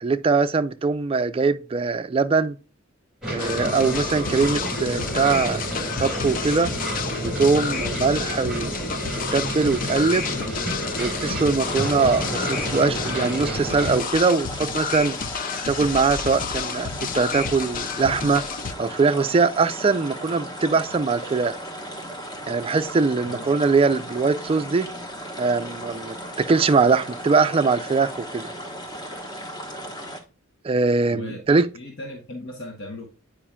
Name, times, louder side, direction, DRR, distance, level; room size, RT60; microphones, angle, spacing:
voice 1, 0.0-2.6 3.3-5.6 6.0-6.7 7.2-8.7 9.3-10.3 11.0-15.2 15.7-18.4 18.8-21.6 22.5-24.9 25.4-28.5 30.6-31.7, right 4 dB, 25° right, 0.3 m, -22 dB
sound 1, 3.2-14.0, right 1 dB, ahead, 2.5 m, -30 dB
sound 2, 3.4-18.7, left 6 dB, 40° left, 0.4 m, -31 dB
sound 3, 11.6-30.2, equal, 20° left, 1.1 m, -36 dB
voice 2, 31.1-33.1, left 1 dB, 60° left, 1.1 m, -37 dB
8.7 x 5.0 x 2.2 m
head